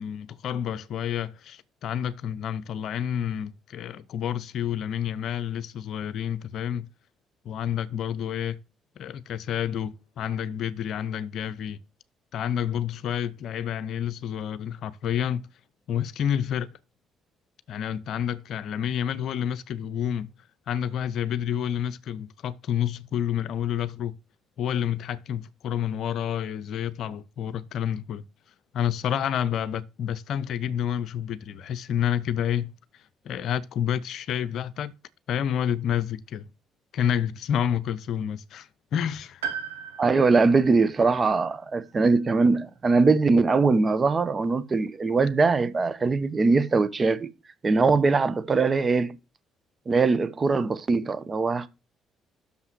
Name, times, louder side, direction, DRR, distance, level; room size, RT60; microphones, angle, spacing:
voice 1, 0.0-6.9 7.4-8.6 9.0-11.8 12.3-15.4 15.9-16.8 17.7-20.3 20.7-24.1 24.6-28.2 28.7-32.7 33.2-34.9 35.3-36.5 36.9-39.4, left 9 dB, 60° left, 0.6 m, -29 dB
Piano, 39.4-43.3 43.6-43.7 44.8-44.9, right 7 dB, 85° right, 1.2 m, -39 dB
voice 2, 40.0-47.3 47.6-49.1 49.9-51.7, right 4 dB, 35° right, 0.8 m, -22 dB
6.5 x 5.6 x 6.1 m
hypercardioid pair, 50°, 0 cm